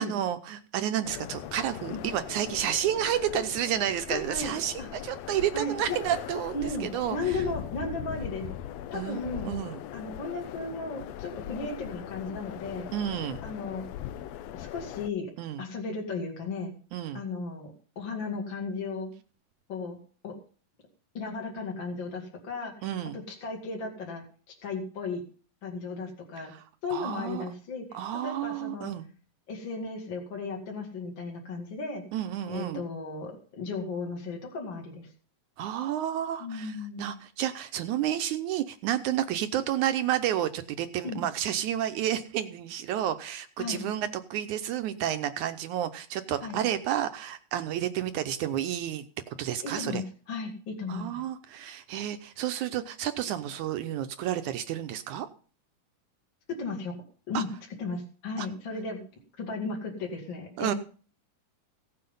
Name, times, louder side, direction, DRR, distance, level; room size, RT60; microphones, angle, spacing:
voice 1, 0.0-6.6 6.8-7.4 8.9-9.2 9.5-9.8 12.9-13.4 15.4-15.6 16.9-17.2 22.8-23.2 26.9-27.5 27.9-29.1 32.1-32.8 35.6-49.1 49.4-50.0 50.9-55.3 57.3-57.4 58.4-58.5 60.6-60.7, right 11 dB, 75° right, 10 dB, 2.0 m, -30 dB
sound 1, 1.0-15.1, left 11 dB, 80° left, 1.5 m, -40 dB
voice 2, 3.1-3.4 4.1-4.9 5.5-6.0 6.5-8.5 8.9-9.5 9.9-12.9 13.4-13.9 14.5-15.3 15.6-16.7 17.1-19.1 19.7-20.0 20.2-20.3 21.1-25.2 25.6-26.5 26.8-28.9 29.5-32.0 32.5-35.1 36.4-37.1 41.0-41.2 43.6-43.8 46.4-46.6 49.6-51.2 56.5-56.9 57.3-57.5 57.8-59.0 59.3-60.7, left 3 dB, 40° left, 0 dB, 2.6 m, -35 dB
16.5 x 7.8 x 5.4 m, 0.41 s
omnidirectional pair, 3.8 m